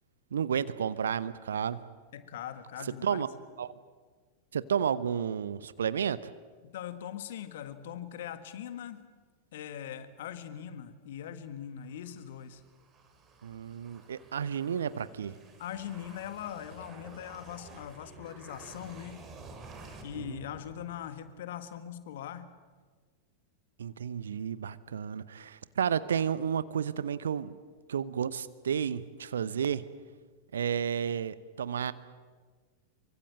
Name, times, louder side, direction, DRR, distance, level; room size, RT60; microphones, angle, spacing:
voice 1, 0.3-1.8 3.0-3.3 3.6-3.7 4.5-6.3 13.4-15.4 20.2-20.4 23.8-27.6 27.9-29.8 30.5-31.9, right 8 dB, 65° right, 16 dB, 0.8 m, -32 dB
voice 2, 2.1-3.3 6.6-9.0 9.5-12.6 15.6-19.3 20.0-22.5, left 10 dB, 55° left, 11 dB, 1.7 m, -41 dB
sound 1, 11.9-21.3, right 3 dB, 25° right, 3.9 m, -51 dB
24.0 x 24.0 x 7.6 m, 1.5 s
figure-of-eight pair, 90°, 0 cm